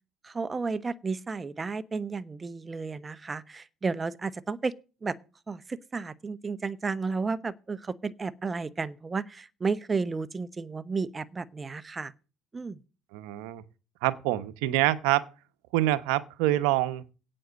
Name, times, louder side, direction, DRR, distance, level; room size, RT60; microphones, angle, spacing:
voice 1, 0.2-4.7 5.0-5.1 5.5-12.1 12.5-12.8, right 4 dB, 25° right, 0.8 m, -32 dB
voice 2, 13.1-13.6 14.0-15.3 15.7-17.1, right 15 dB, 85° right, 0.9 m, -26 dB
8.8 x 7.7 x 8.1 m
supercardioid pair, 95°, 0 cm